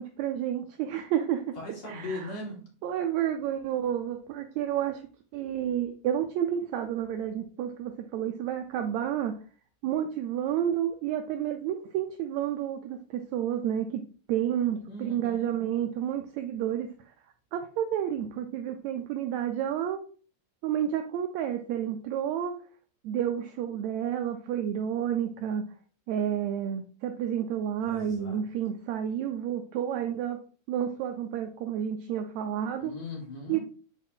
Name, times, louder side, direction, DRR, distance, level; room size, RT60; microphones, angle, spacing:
voice 1, 0.0-1.6 1.9-2.3 2.8-5.0 5.3-9.3 9.8-14.0 14.3-16.9 17.5-20.0 20.6-22.5 23.0-25.6 26.1-30.4 30.7-32.9 33.5-33.6, right 10 dB, 75° right, 6 dB, 1.8 m, -30 dB
voice 2, 1.6-2.7 14.8-15.5 27.8-28.4 32.8-33.6, left 2 dB, 60° left, -3 dB, 3.4 m, -39 dB
6.1 x 4.1 x 3.7 m, 0.41 s
omnidirectional pair, 3.5 m